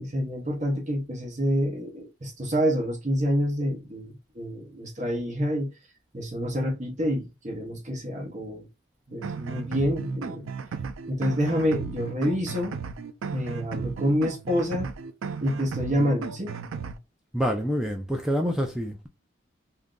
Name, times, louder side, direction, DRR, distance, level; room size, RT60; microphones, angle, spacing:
voice 1, 0.0-5.7 6.1-8.7 9.1-10.5 11.1-12.8 13.3-14.9 15.4-16.6, equal, 35° right, 0.8 m, -27 dB
sound 1, 9.2-17.0, right 5 dB, 80° right, 0.4 m, -35 dB
voice 2, 17.3-19.1, equal, 5° right, 0.3 m, -27 dB
2.7 x 2.5 x 3.6 m
head